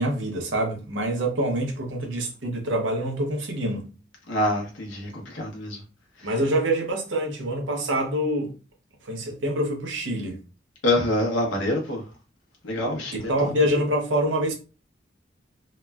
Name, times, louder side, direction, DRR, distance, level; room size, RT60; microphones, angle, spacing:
voice 1, 0.0-3.9 6.2-8.5 9.0-10.4 13.2-14.5, right 1 dB, 85° right, 0.8 m, -26 dB
voice 2, 4.3-5.8 6.2-6.3 10.8-12.0 12.6-13.5, left 1 dB, 90° left, 0.8 m, -26 dB
3.0 x 2.1 x 2.2 m
head